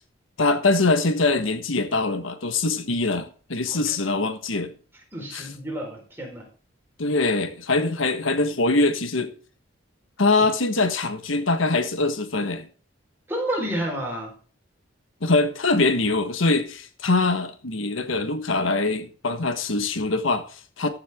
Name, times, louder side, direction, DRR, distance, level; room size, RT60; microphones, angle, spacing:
voice 1, 0.4-4.7 5.3-5.5 7.0-9.3 10.2-12.7 15.2-20.9, left 3 dB, 80° left, 1.3 m, -23 dB
voice 2, 5.1-6.5 10.4-10.5 13.3-14.4, right 1 dB, 10° right, 4.3 m, -30 dB
14.5 x 7.7 x 3.6 m
head